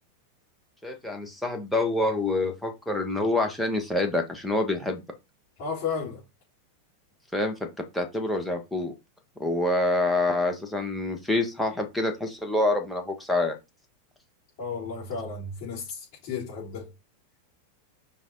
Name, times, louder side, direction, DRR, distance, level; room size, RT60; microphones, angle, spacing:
voice 1, 0.8-5.0 7.3-7.7 7.9-8.9 9.4-13.6, left 2 dB, ahead, 1.7 m, -26 dB
voice 2, 5.6-6.2 14.6-16.9, left 5 dB, 45° left, 4.2 m, -33 dB
5.5 x 4.9 x 4.2 m
figure-of-eight pair, 90°, 0 cm